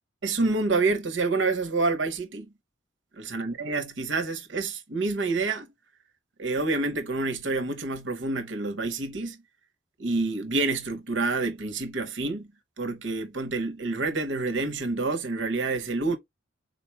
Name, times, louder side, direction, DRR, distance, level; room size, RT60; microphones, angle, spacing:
voice 1, 0.2-2.5 3.2-5.7 6.4-9.4 10.0-12.5 12.8-16.2, right 3 dB, 75° right, 1.0 m, -28 dB
3.8 x 2.6 x 4.4 m
head